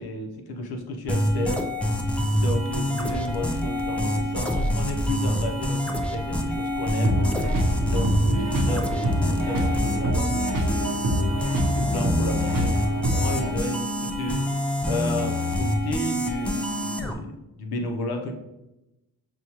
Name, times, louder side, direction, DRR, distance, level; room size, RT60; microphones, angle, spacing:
voice 1, 0.0-1.6 2.3-7.2 7.8-11.1 11.7-12.8 13.0-14.4 14.8-18.3, left 2 dB, 80° left, 3 dB, 0.8 m, -32 dB
sound 1, 1.1-17.1, equal, 5° left, 0.3 m, -26 dB
sound 2, 7.0-13.5, equal, 60° right, 0.7 m, -26 dB
6.0 x 2.3 x 2.9 m, 0.94 s
wide cardioid pair, 120°, 37 cm